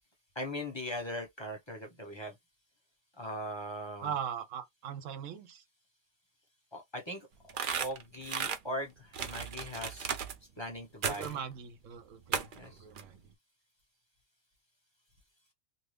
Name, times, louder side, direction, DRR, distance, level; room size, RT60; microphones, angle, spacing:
voice 1, 0.3-2.3 3.2-4.1 6.7-7.3 7.7-10.1 10.6-11.4 12.6-12.8, equal, 25° left, 1.0 m, -40 dB
voice 2, 4.0-5.6 11.0-13.2, right 8 dB, 80° right, 1.0 m, -40 dB
sound 1, 7.5-8.6 9.1-10.4 11.0-11.4 12.3-12.6 13.0-13.1, right 7 dB, 55° right, 0.6 m, -35 dB
2.6 x 2.6 x 3.2 m
omnidirectional pair, 1.3 m